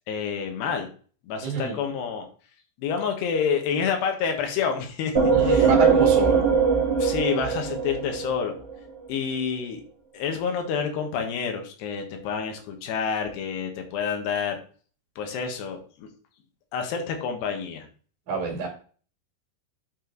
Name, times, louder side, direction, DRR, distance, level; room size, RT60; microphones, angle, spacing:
voice 1, 0.1-0.9 1.2-2.3 2.8-5.7 7.0-8.5 9.1-9.8 10.1-14.6 15.2-16.1 16.7-17.9, left 6 dB, 75° left, 4 dB, 3.5 m, -28 dB
voice 2, 1.4-1.8 5.3-6.4 18.3-18.7, right 5 dB, 50° right, 0 dB, 3.3 m, -26 dB
sound 1, 5.1-8.7, right 5 dB, 25° right, 1.3 m, -21 dB
8.7 x 5.2 x 3.9 m, 0.41 s
omnidirectional pair, 4.9 m